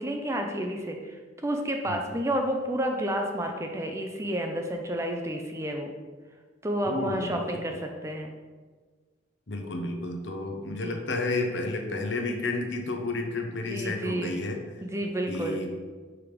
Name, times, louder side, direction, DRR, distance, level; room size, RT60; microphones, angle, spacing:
voice 1, 0.0-5.9 6.6-8.3 10.6-11.0 13.7-14.4 14.8-15.6, right 1 dB, 15° right, 3 dB, 0.5 m, -30 dB
voice 2, 6.8-7.7 9.5-14.6 15.3-15.7, left 2 dB, 70° left, 3 dB, 0.9 m, -31 dB
5.1 x 4.8 x 5.1 m, 1.4 s
head